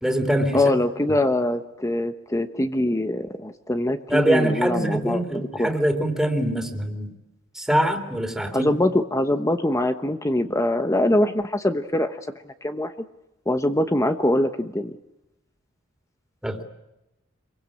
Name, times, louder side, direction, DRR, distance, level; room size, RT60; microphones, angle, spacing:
voice 1, 0.0-0.6 4.1-7.1 7.5-8.7 16.4-16.6, right 1 dB, ahead, 5 dB, 3.2 m, -23 dB
voice 2, 0.5-5.2 5.5-5.7 8.5-13.1 13.5-14.9, left 1 dB, 15° left, 8 dB, 1.0 m, -23 dB
27.0 x 23.0 x 8.7 m, 0.92 s
head